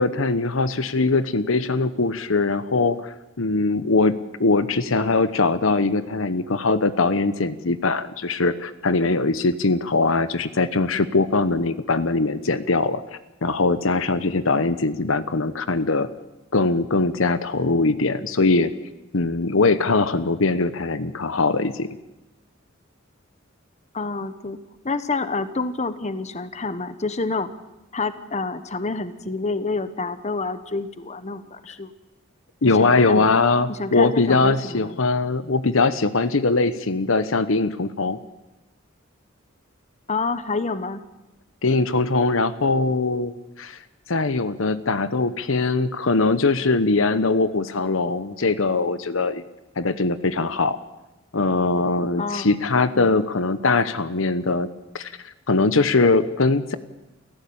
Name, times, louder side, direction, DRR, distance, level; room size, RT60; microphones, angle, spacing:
voice 1, 0.0-13.0 13.4-16.1 16.5-18.7 19.1-22.0 32.6-38.2 41.6-43.8 44.1-49.4 49.8-50.8 51.3-54.7 54.9-55.1 55.5-56.8, left 3 dB, 75° left, 13 dB, 1.0 m, -21 dB
voice 2, 23.9-24.6 24.8-27.5 27.9-31.9 32.8-33.3 33.7-35.0 40.1-41.0 52.2-52.5, left 3 dB, 35° left, 12 dB, 1.2 m, -28 dB
29.0 x 15.0 x 8.7 m, 1.0 s
head